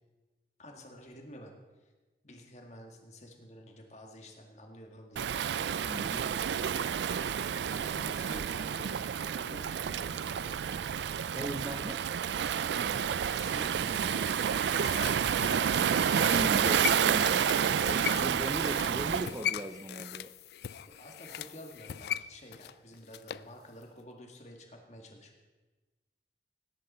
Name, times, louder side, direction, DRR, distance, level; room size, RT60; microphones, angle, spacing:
voice 1, 0.6-1.5 1.8-1.9 2.2-5.3 5.8-10.6 13.3-15.8 17.4-19.4 20.9-25.4, equal, 40° left, 2 dB, 1.9 m, -50 dB
Waves surf, 5.2-19.3, right 8 dB, 80° right, 0.4 m, -29 dB
voice 2, 5.8-6.2 11.3-12.1 16.3-20.3, right 1 dB, 20° right, 7 dB, 0.5 m, -38 dB
sound 1, 14.1-23.5 23.8-23.9, left 10 dB, 65° left, 0.3 m, -40 dB
18.5 x 10.5 x 4.3 m, 1.2 s
head